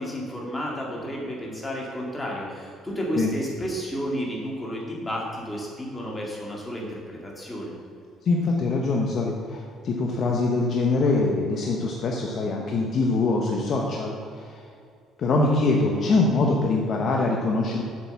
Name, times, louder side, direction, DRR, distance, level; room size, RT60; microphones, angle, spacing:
voice 1, 0.0-7.7, equal, 10° left, -3 dB, 2.0 m, -32 dB
voice 2, 8.2-14.6 15.2-17.8, left 3 dB, 40° left, 0 dB, 1.0 m, -23 dB
7.8 x 7.6 x 7.0 m, 2.4 s
cardioid pair, 175°, 0 cm